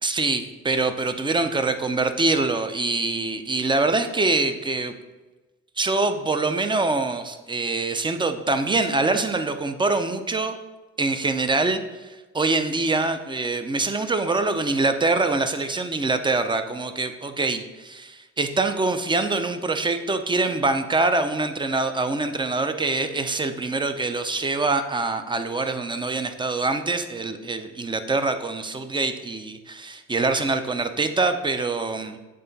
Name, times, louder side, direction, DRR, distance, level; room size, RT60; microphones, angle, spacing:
voice 1, 0.0-4.9 5.8-10.6 11.0-32.2, right 3 dB, 15° right, 8 dB, 0.5 m, -24 dB
7.8 x 3.7 x 4.0 m, 1.2 s
cardioid pair, 90°, 30 cm